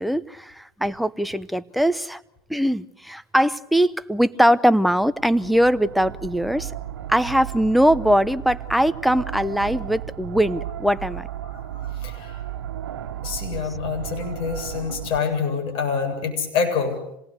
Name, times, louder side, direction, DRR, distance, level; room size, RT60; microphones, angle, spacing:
voice 1, 0.0-2.2 2.5-6.7 7.1-11.3, equal, ahead, 13 dB, 0.9 m, -21 dB
sound 1, 4.9-15.2, right 11 dB, 85° right, 1.5 m, -34 dB
voice 2, 11.5-12.4 13.2-17.0, left 6 dB, 50° left, 4 dB, 8.0 m, -26 dB
26.5 x 18.5 x 8.1 m, 0.78 s
hypercardioid pair, 90°, 12 cm